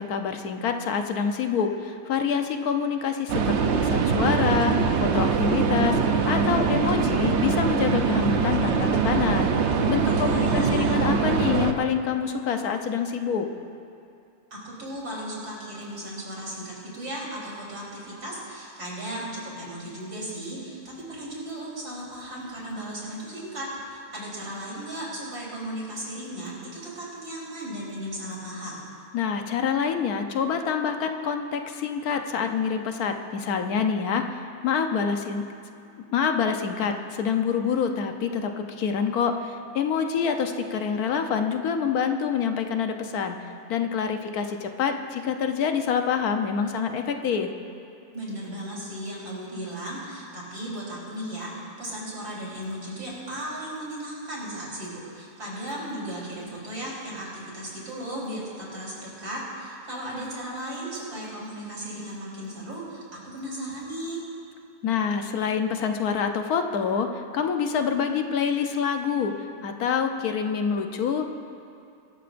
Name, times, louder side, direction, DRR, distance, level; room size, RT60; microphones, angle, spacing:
voice 1, 0.0-9.5 9.9-13.5 29.1-35.4 36.1-47.5 64.8-71.3, left 6 dB, 75° left, 5 dB, 1.3 m, -26 dB
sound 1, 3.3-11.7, right 5 dB, 55° right, 0.9 m, -23 dB
voice 2, 10.0-11.0 14.5-28.8 48.1-64.2, right 1 dB, 90° right, -6 dB, 4.3 m, -36 dB
23.5 x 13.0 x 2.6 m, 2.5 s
omnidirectional pair, 1.6 m